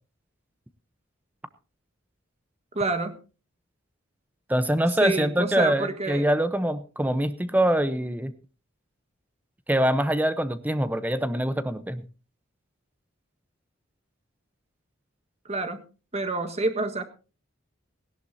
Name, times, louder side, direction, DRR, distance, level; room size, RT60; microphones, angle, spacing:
voice 1, 2.7-3.2 5.0-6.3 15.4-15.8 16.1-17.0, right 2 dB, 35° right, 7 dB, 1.5 m, -27 dB
voice 2, 4.5-8.3 9.7-12.1, right 1 dB, 10° right, 12 dB, 0.8 m, -24 dB
17.5 x 16.5 x 2.8 m, 0.34 s
head